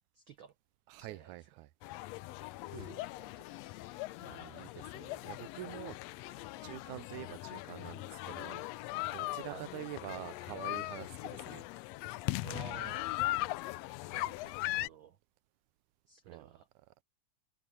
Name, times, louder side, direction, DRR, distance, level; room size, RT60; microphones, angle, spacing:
voice 1, 0.1-0.5 1.0-1.4 2.7-3.5 9.5-9.7 12.4-13.1 14.1-15.2 16.1-16.7, right 8 dB, 70° right, 1.2 m, -52 dB
voice 2, 0.9-1.7 2.8-3.1 4.2-6.0 6.3-11.6 16.3-16.5, right 17 dB, 90° right, 2.1 m, -47 dB
sound 1, 1.8-14.9, left 19 dB, 80° left, 1.5 m, -39 dB
omnidirectional pair, 3.4 m